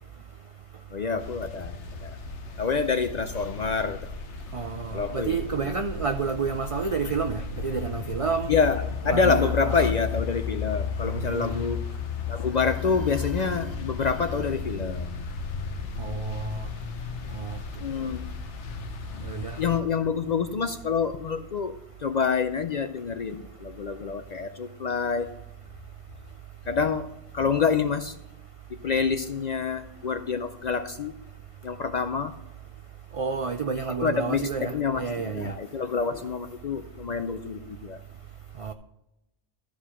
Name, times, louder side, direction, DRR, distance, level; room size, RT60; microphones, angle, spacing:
voice 1, 0.9-2.1 2.6-4.1 4.9-5.8 8.5-11.9 12.3-15.3 17.8-18.3 19.6-25.3 26.7-27.1 27.3-28.2 28.7-31.1 31.6-32.3 34.0-38.0, left 5 dB, 55° left, 0.5 m, -27 dB
sound 1, 1.2-19.8, left 5 dB, 85° left, 1.1 m, -36 dB
voice 2, 4.5-8.5 9.1-9.9 11.3-11.7 16.0-16.7 17.3-17.6 19.2-19.6 33.2-35.5 38.6-38.7, right 5 dB, 60° right, 0.3 m, -30 dB
13.0 x 4.9 x 5.6 m
omnidirectional pair, 1.1 m